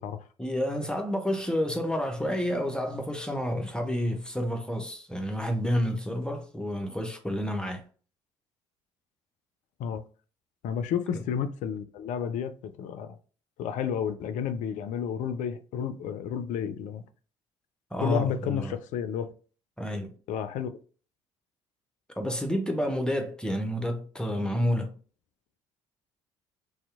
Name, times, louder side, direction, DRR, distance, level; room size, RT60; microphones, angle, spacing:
voice 1, 0.4-7.8 11.1-11.2 17.9-18.7 19.8-20.1 22.2-25.0, equal, 5° left, 0.6 m, -29 dB
voice 2, 10.6-12.5 12.8-13.2 13.6-17.0 18.0-19.3 20.3-20.7, left 8 dB, 55° left, 0.4 m, -31 dB
2.6 x 2.0 x 2.4 m
hypercardioid pair, 55°, 15 cm